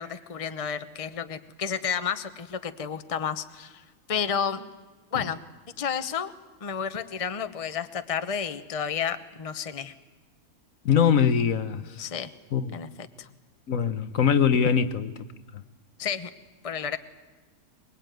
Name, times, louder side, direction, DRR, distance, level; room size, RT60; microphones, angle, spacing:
voice 1, 0.0-4.7 5.1-5.4 5.8-6.3 6.6-9.9 12.0-12.3 12.7-12.9 13.2-13.3 16.0-16.3 16.6-17.0, left 7 dB, 25° left, 0.9 m, -31 dB
voice 2, 10.8-12.0 12.5-12.8 13.7-15.1 15.5-15.6, left 7 dB, 70° left, 1.3 m, -23 dB
23.5 x 22.0 x 9.2 m
omnidirectional pair, 1.5 m